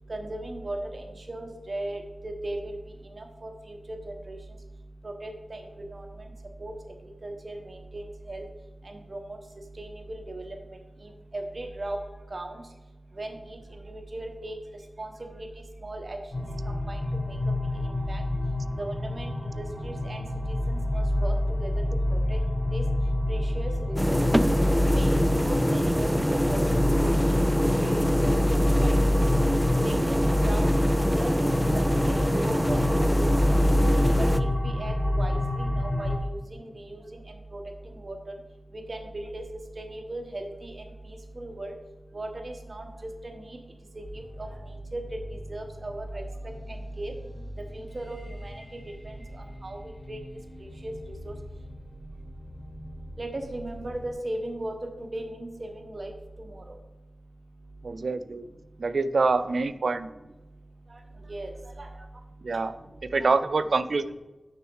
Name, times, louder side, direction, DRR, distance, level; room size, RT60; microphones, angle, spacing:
voice 1, 0.1-0.8 1.3-2.8 3.2-3.5 3.9-4.4 5.0-5.6 5.9-6.0 6.6-6.7 7.2-8.0 8.3-8.5 9.1-9.2 9.8-10.5 11.3-12.0 12.3-12.5 13.2-13.6 13.9-14.5 15.0-15.1 15.8-16.2 16.9-17.0 18.1-18.2 18.8-19.3 19.6-21.3 21.6-21.7 22.1-22.4 22.7-22.8 23.3-24.3 24.9-26.8 27.1-27.2 27.6-28.0 28.2-28.5 28.8-29.0 29.8-30.1 30.4-30.7 31.1-31.3 32.0-33.8 34.2-34.3 34.6-36.4 36.8-37.0 37.5-37.6 38.0-38.1 38.9-39.4 39.8-40.7 41.4-41.7 42.1-42.8 43.2-43.4 44.4-44.5 44.9-45.0 45.5-46.2 47.0-47.1 47.7-48.2 48.4-48.5 49.6-49.8 50.1-50.2 50.8-50.9 51.2-51.3 53.2-54.7 55.1-56.1 61.3-61.5 61.8-61.9 63.2-63.3, right 1 dB, 45° right, 4 dB, 1.1 m, -36 dB
sound 1, 16.3-36.2, left 1 dB, 35° left, 1.4 m, -26 dB
sound 2, 24.0-34.4, equal, ahead, 0.3 m, -25 dB
sound 3, 44.0-54.1, equal, 60° left, 2.5 m, -43 dB
voice 2, 57.8-58.4 58.8-60.1 62.4-64.2, right 3 dB, 70° right, 12 dB, 0.4 m, -26 dB
6.6 x 6.3 x 4.7 m, 1.1 s
wide cardioid pair, 65°, 0 cm